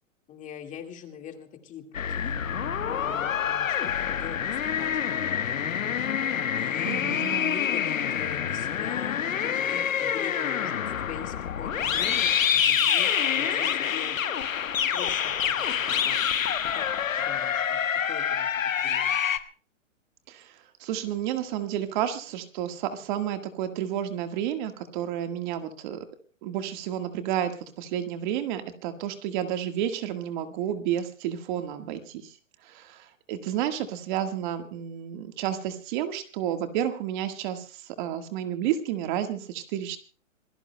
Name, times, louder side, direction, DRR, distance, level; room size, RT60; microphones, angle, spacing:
voice 1, 0.3-2.4 2.8-5.2 6.6-14.2 14.9-16.3 16.6-16.9 17.2-17.8 18.1-19.2, left 8 dB, 20° left, 5 dB, 1.9 m, -43 dB
sound 1, 1.9-19.4, left 8 dB, 90° left, 1.3 m, -27 dB
voice 2, 6.9-7.6 20.3-26.0 26.4-32.4 32.6-40.0, right 10 dB, 40° right, 8 dB, 1.6 m, -31 dB
26.5 x 18.0 x 2.2 m, 0.38 s
hypercardioid pair, 140°, 39 cm